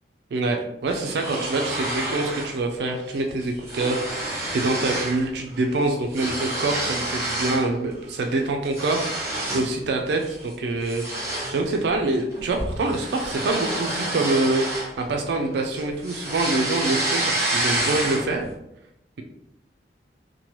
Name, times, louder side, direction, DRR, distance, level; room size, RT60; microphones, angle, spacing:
voice 1, 0.3-11.0 11.5-18.4, right 2 dB, 65° right, 2 dB, 0.4 m, -25 dB
sound 1, 0.9-2.6 2.9-3.2 3.4-5.2 5.5-7.7 8.1-9.8 10.2-10.4 10.9-15.4 15.7-18.4, right 1 dB, 15° right, 0.8 m, -28 dB
2.9 x 2.2 x 3.0 m, 0.84 s
head